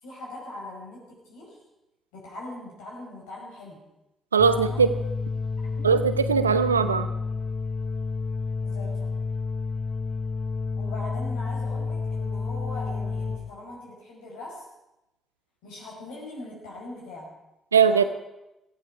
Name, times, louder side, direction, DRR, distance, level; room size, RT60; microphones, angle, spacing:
voice 1, 0.0-1.6 2.1-3.8 4.5-4.8 5.8-5.9 8.6-9.1 10.7-14.7 15.6-17.3 17.9-18.1, left 2 dB, 75° left, -2 dB, 5.2 m, -41 dB
voice 2, 4.3-4.9 5.8-7.1 17.7-18.1, right 6 dB, 90° right, 12 dB, 0.6 m, -20 dB
sound 1, 4.4-13.4, left 4 dB, 40° left, 3.3 m, -30 dB
18.0 x 15.0 x 4.9 m, 0.94 s
figure-of-eight pair, 45°, 0 cm